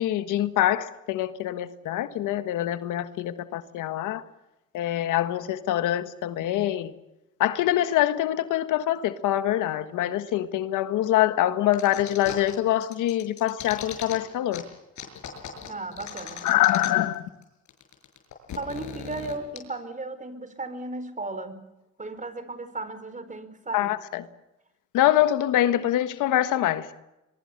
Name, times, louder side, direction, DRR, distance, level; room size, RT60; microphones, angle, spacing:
voice 1, 0.0-4.2 4.7-6.9 7.4-14.6 16.4-17.2 23.7-24.3 24.9-26.9, left 13 dB, 90° left, 1.5 m, -24 dB
sound 1, 11.7-12.6 12.8-14.2 14.5-14.6 15.0-17.2 17.4-17.5 17.7-19.6, left 8 dB, 70° left, 6.4 m, -38 dB
voice 2, 15.7-16.5 18.5-21.7 22.0-23.9, right 2 dB, 25° right, 4.4 m, -35 dB
23.5 x 23.5 x 6.7 m
cardioid pair, 90°, 30 cm